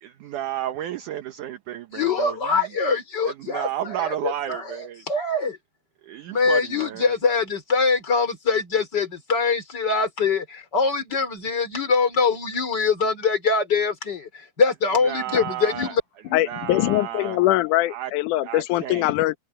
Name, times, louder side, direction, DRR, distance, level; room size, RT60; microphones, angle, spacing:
voice 1, 0.0-2.4 3.4-5.0 6.1-7.1 15.1-15.9 16.5-17.4 17.9-18.1 18.4-19.1, right 12 dB, 65° right, 2.2 m, -32 dB
voice 2, 1.9-5.6 6.3-16.0, left 4 dB, 25° left, 4.0 m, -23 dB
voice 3, 16.3-19.4, left 16 dB, 70° left, 2.1 m, -22 dB
omnidirectional pair, 4.6 m